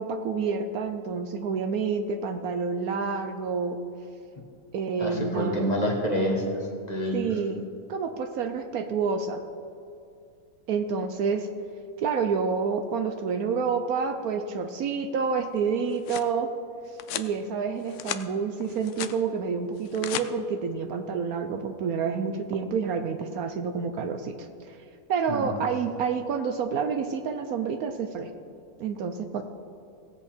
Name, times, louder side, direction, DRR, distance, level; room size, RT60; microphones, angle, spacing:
voice 1, 0.0-3.8 4.7-5.6 7.1-9.4 10.7-11.5 12.0-16.5 17.2-24.8 25.1-28.3 28.8-29.4, right 5 dB, 70° right, 7 dB, 1.1 m, -28 dB
voice 2, 5.0-7.3 25.3-25.5, equal, 25° left, 0 dB, 1.3 m, -27 dB
sound 1, 15.6-16.3 17.0-17.3 17.8-18.2 18.6-19.2 19.8-20.3, left 11 dB, 70° left, 0.7 m, -35 dB
17.5 x 8.0 x 4.3 m, 2.4 s
omnidirectional pair, 1.7 m